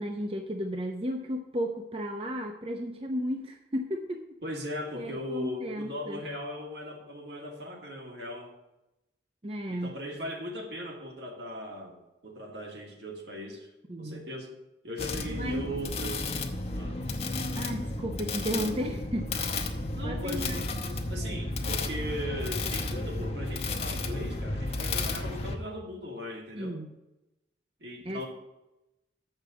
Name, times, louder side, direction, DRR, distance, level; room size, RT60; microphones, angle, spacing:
voice 1, 0.0-4.2 4.9-6.2 9.4-9.9 13.9-14.2 15.3-15.6 17.6-19.3 20.0-20.6 26.5-26.9 28.0-28.2, equal, 30° right, 4 dB, 0.7 m, -34 dB
voice 2, 4.4-8.5 9.7-13.7 14.0-14.6 14.8-16.2 16.7-17.0 19.9-26.8 27.8-28.3, equal, 75° right, 1 dB, 2.2 m, -38 dB
sound 1, 15.0-25.6, left 2 dB, 35° left, 0.9 m, -33 dB
7.3 x 6.7 x 8.0 m, 0.94 s
head